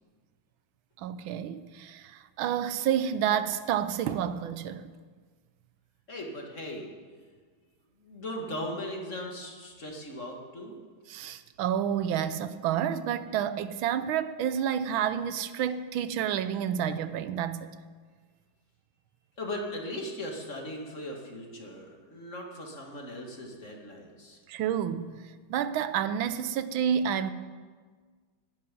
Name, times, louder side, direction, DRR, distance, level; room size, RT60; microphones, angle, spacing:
voice 1, 1.0-4.9 11.1-17.7 24.5-25.2 25.5-27.3, right 9 dB, 85° right, 1.6 m, -29 dB
voice 2, 6.1-6.9 8.0-10.8 19.4-24.4, left 1 dB, 40° left, 2.4 m, -38 dB
11.5 x 10.5 x 10.0 m
omnidirectional pair, 2.2 m